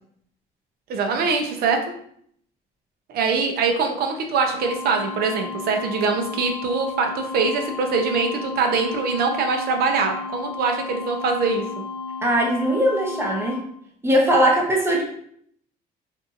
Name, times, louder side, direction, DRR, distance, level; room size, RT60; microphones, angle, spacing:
voice 1, 0.9-1.8 3.1-11.6, right 4 dB, 65° right, 4 dB, 0.6 m, -23 dB
sound 1, 4.5-13.6, left 4 dB, 20° left, 0.5 m, -33 dB
voice 2, 12.2-13.6 14.0-15.0, equal, 15° right, 0 dB, 0.7 m, -20 dB
2.6 x 2.5 x 2.5 m, 0.66 s
cardioid pair, 110°, 17 cm